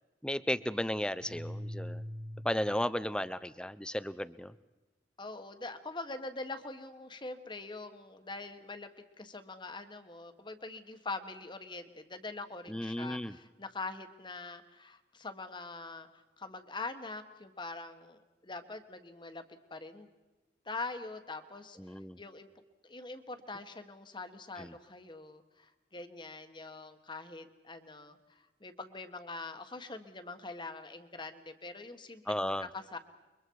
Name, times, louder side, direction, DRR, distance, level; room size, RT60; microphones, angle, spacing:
voice 1, 0.2-2.0 2.4-4.5 12.7-13.4 21.8-22.2 24.6-24.7 32.3-32.7, left 1 dB, 5° left, 15 dB, 0.6 m, -34 dB
sound 1, 1.2-2.9, equal, 60° right, 4.6 m, -42 dB
voice 2, 5.2-8.9 9.2-16.1 16.4-20.1 20.6-22.5 22.8-33.0, left 3 dB, 25° left, 8 dB, 1.5 m, -44 dB
29.5 x 23.0 x 4.7 m, 1.1 s
head